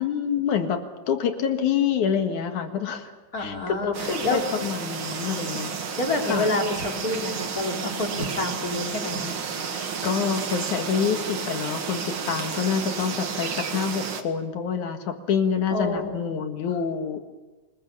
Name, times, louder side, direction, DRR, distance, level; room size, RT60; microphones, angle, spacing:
voice 1, 0.0-3.1 3.4-5.8 6.3-6.5 10.0-17.2, left 7 dB, 70° left, 6 dB, 3.1 m, -27 dB
voice 2, 3.3-4.4 6.0-9.3 15.7-16.2, left 2 dB, 30° left, 2 dB, 3.4 m, -28 dB
sound 1, 3.9-14.2, right 6 dB, 45° right, 2.1 m, -32 dB
27.5 x 21.0 x 7.3 m, 1.2 s
omnidirectional pair, 3.6 m